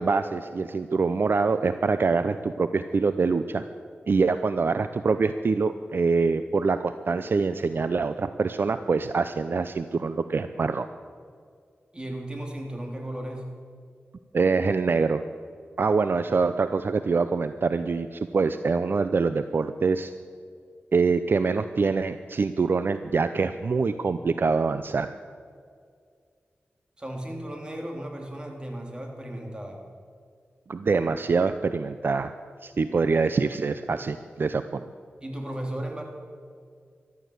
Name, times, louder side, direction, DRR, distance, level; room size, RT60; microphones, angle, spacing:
voice 1, 0.0-3.6 4.1-10.9 14.3-15.2 15.8-20.1 20.9-25.1 30.7-32.3 32.6-34.8, right 4 dB, 60° right, 11 dB, 0.6 m, -25 dB
voice 2, 11.9-13.4 27.0-29.8 35.2-36.0, right 1 dB, 20° right, 1 dB, 3.2 m, -35 dB
14.5 x 12.0 x 8.1 m, 2.2 s
wide cardioid pair, 65°, 4 cm